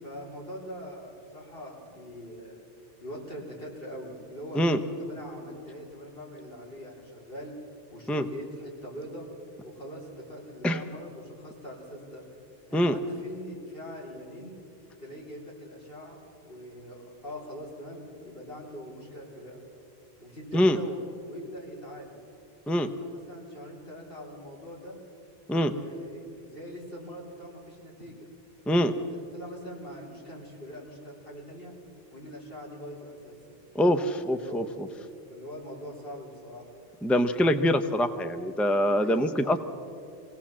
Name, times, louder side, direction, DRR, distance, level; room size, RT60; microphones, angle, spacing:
voice 1, 0.0-2.6 3.0-4.6 5.0-7.5 7.9-9.3 9.6-12.2 12.7-14.5 15.0-19.6 20.2-21.0 21.2-22.1 22.7-25.0 25.6-28.3 29.1-31.7 32.1-33.4 34.3-34.7 35.3-36.7 39.0-39.6, equal, 60° left, -3 dB, 4.6 m, -42 dB
voice 2, 33.7-34.6 37.0-39.6, equal, ahead, 9 dB, 0.6 m, -24 dB
23.5 x 17.5 x 7.5 m, 2.6 s
omnidirectional pair, 1.1 m